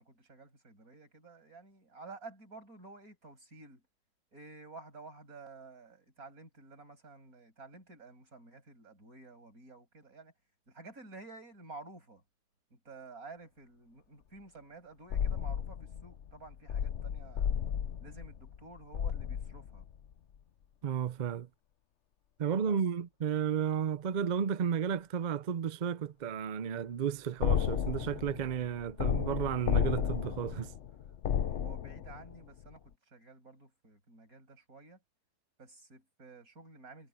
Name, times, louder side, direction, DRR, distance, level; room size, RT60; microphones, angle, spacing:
voice 1, 0.0-3.8 4.3-10.3 10.7-12.2 12.7-17.5 18.0-19.9 22.6-22.8 31.5-35.0 35.6-37.1, right 3 dB, 65° right, 7.3 m, -52 dB
sound 1, 15.1-20.1 27.4-32.4 32.6-32.7, left 9 dB, 55° left, 0.9 m, -33 dB
voice 2, 20.8-21.5 22.4-30.7, right 8 dB, 85° right, 0.4 m, -33 dB
omnidirectional pair, 1.7 m